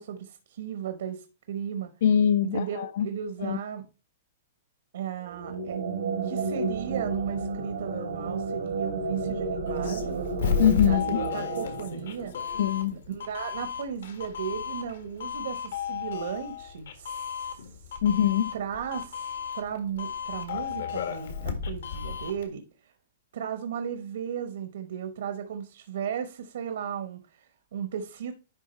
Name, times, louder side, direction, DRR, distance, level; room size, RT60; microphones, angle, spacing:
voice 1, 0.0-1.9 2.5-3.9 4.9-5.8 6.2-10.2 10.9-12.4 12.9-18.0 18.5-22.9 23.3-28.3, right 8 dB, 65° right, 1.0 m, -35 dB
voice 2, 2.0-3.1 3.4-3.6 10.6-11.2 12.6-13.0 18.0-18.5, left 9 dB, 55° left, 0.4 m, -23 dB
sound 1, 5.2-12.7, right 4 dB, 90° right, 1.8 m, -32 dB
Doorbell, 9.7-22.5, left 6 dB, 75° left, 1.7 m, -34 dB
10.5 x 3.7 x 4.3 m
hypercardioid pair, 175°, 0 cm